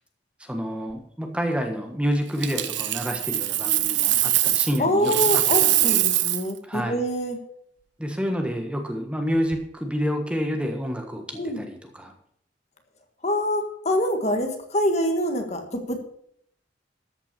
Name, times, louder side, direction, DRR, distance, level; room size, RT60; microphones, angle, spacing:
voice 1, 0.4-6.0 6.6-7.0 8.0-12.1, equal, 5° right, 4 dB, 1.4 m, -29 dB
Coin (dropping), 2.4-4.8 5.0-6.5 9.3-9.5, right 14 dB, 85° right, 0.8 m, -22 dB
voice 2, 4.8-7.4 11.4-11.6 13.2-16.0, equal, 40° left, 5 dB, 1.6 m, -25 dB
13.5 x 5.9 x 6.9 m, 0.69 s
head